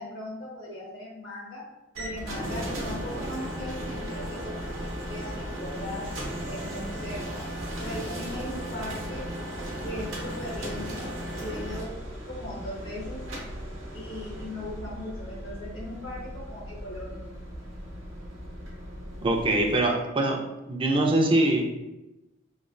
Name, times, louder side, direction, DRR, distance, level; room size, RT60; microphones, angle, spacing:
voice 1, 0.0-1.6 2.0-6.1 6.5-7.4 7.8-9.3 9.8-11.9 12.2-13.2 13.9-17.3, left 1 dB, 75° left, -5 dB, 1.1 m, -38 dB
sound 1, 1.9-19.8, equal, 90° right, 0.7 m, -36 dB
voice 2, 19.2-20.4 20.7-21.6, right 1 dB, 25° right, 1 dB, 0.3 m, -23 dB
3.0 x 2.2 x 2.4 m, 0.99 s
head